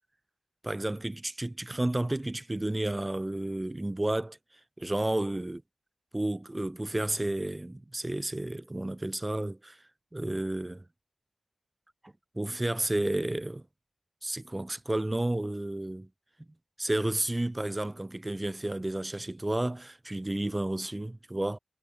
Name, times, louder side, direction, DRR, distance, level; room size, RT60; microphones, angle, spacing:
voice 1, 0.6-4.4 4.8-5.6 6.1-9.8 10.1-10.8 12.0-13.6 14.2-16.1 16.8-21.6, right 1 dB, 15° right, 3.2 m, -31 dB
wide cardioid pair, 155°, 0 cm